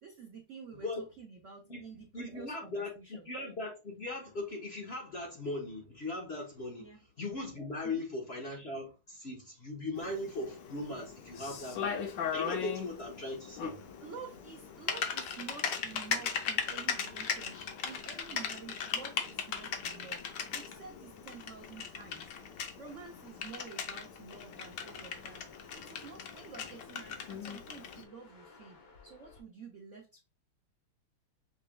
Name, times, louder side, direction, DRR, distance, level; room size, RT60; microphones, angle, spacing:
voice 1, 0.0-3.3 6.8-7.0 7.8-8.0 14.0-20.2 20.5-22.3 22.8-25.5 25.7-30.2, right 5 dB, 80° right, 0.6 m, -50 dB
voice 2, 2.1-6.9 7.2-12.1 12.3-13.8, left 2 dB, 40° left, 0.9 m, -39 dB
Typing, 10.0-28.0, left 7 dB, 65° left, 1.3 m, -38 dB
sound 1, 11.3-29.4, left 4 dB, 90° left, 2.4 m, -58 dB
6.6 x 3.2 x 2.3 m
omnidirectional pair, 2.4 m